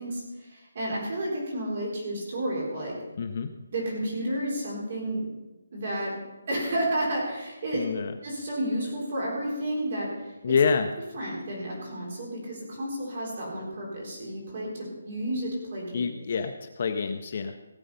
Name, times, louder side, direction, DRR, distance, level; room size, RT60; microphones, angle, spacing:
voice 1, 0.0-2.9 3.7-5.3 5.7-6.2 6.5-7.8 8.2-10.5 11.1-16.0, right 1 dB, 30° right, -3 dB, 3.9 m, -31 dB
voice 2, 3.2-3.5 7.7-8.1 10.4-10.9 15.9-17.5, left 5 dB, 30° left, 7 dB, 0.6 m, -27 dB
17.5 x 7.7 x 5.5 m, 1.1 s
hypercardioid pair, 180°, 0 cm